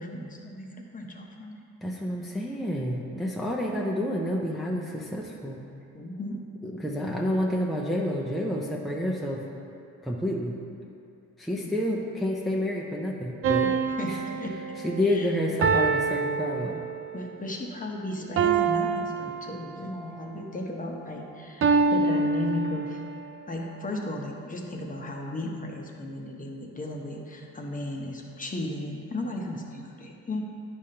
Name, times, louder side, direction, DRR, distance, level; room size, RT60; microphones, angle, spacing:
voice 1, 0.0-1.6 5.9-6.4 11.5-12.0 14.0-14.6 15.1-15.3 17.1-23.0 23.5-30.4, left 1 dB, 25° left, 0 dB, 0.9 m, -35 dB
voice 2, 1.8-5.6 6.6-9.4 10.0-10.5 11.4-13.7 14.1-14.2 14.8-16.8, equal, ahead, -3 dB, 0.6 m, -29 dB
sound 1, 13.4-17.2 18.4-19.9 21.6-23.2, right 5 dB, 45° right, 0.5 m, -26 dB
9.9 x 5.1 x 2.8 m, 2.5 s
cardioid pair, 90°, 30 cm